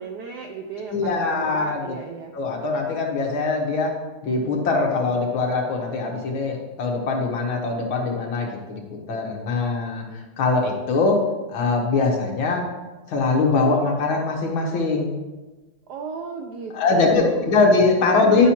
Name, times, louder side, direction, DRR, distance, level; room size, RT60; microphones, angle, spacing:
voice 1, 0.0-2.3 15.9-17.7 18.1-18.5, right 5 dB, 75° right, 3 dB, 0.9 m, -33 dB
voice 2, 0.9-1.9 2.3-3.9 4.2-8.8 9.1-10.0 10.4-11.2 11.5-12.6 13.1-15.1 16.7-18.5, left 3 dB, 70° left, 0 dB, 2.0 m, -22 dB
11.0 x 5.7 x 2.9 m, 1.2 s
omnidirectional pair, 2.3 m